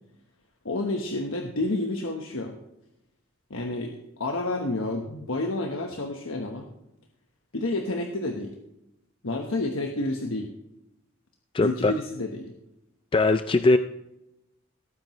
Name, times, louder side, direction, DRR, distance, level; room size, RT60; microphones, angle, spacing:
voice 1, 0.6-2.5 3.5-6.7 7.5-8.5 9.2-10.5 11.6-12.5, left 2 dB, 75° left, 3 dB, 1.2 m, -29 dB
voice 2, 11.5-11.9 13.1-13.8, left 3 dB, 25° left, 9 dB, 0.3 m, -20 dB
18.0 x 9.2 x 3.1 m, 0.89 s
head